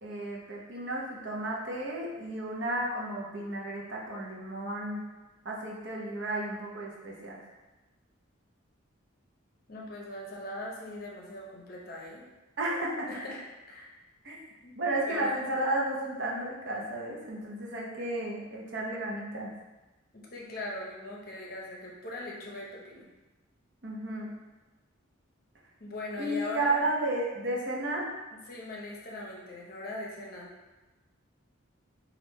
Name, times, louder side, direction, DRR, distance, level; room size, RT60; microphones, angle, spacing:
voice 1, 0.0-5.0 5.4-7.4 12.6-13.1 14.2-14.4 14.8-19.5 23.8-24.3 26.2-28.1, right 1 dB, 60° right, -3 dB, 0.8 m, -33 dB
voice 2, 9.7-12.2 13.1-13.4 13.7-13.9 14.6-14.7 15.1-15.3 20.1-23.1 25.8-26.7 28.3-30.5, left 2 dB, 45° left, -3 dB, 0.7 m, -40 dB
3.5 x 2.5 x 4.2 m, 1.1 s
head